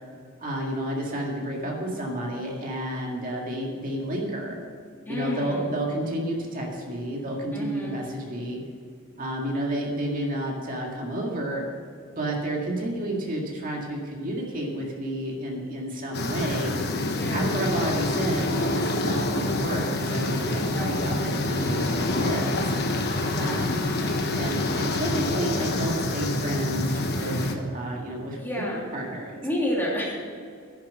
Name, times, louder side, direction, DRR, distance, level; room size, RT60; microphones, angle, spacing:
voice 1, 0.4-4.6 5.1-8.6 9.2-11.6 12.1-16.7 17.3-22.7 23.4-28.7 28.9-29.4, right 1 dB, 40° right, -1 dB, 2.0 m, -31 dB
voice 2, 5.0-5.7 7.5-8.0 17.0-17.7 20.5-21.4 23.1-24.0 28.3-28.8 29.3-30.1, equal, 10° left, -4 dB, 2.7 m, -32 dB
sound 1, 16.1-27.5, left 2 dB, 55° left, 1.3 m, -27 dB
11.0 x 7.5 x 7.7 m, 2.2 s
head